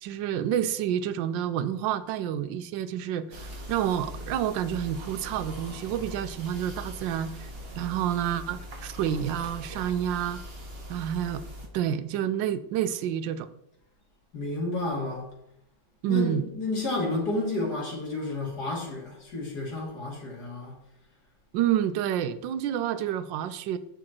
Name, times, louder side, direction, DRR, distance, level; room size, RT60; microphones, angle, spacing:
voice 1, 0.0-7.5 7.8-10.4 10.9-11.4 11.7-13.5 16.0-16.5 21.5-23.8, right 10 dB, 80° right, 13 dB, 1.3 m, -29 dB
sound 1, 3.3-11.7, equal, 35° right, 1.4 m, -41 dB
voice 2, 14.3-15.3 16.1-20.7, left 2 dB, 60° left, -3 dB, 2.7 m, -31 dB
8.5 x 6.4 x 4.4 m, 0.80 s
omnidirectional pair, 2.0 m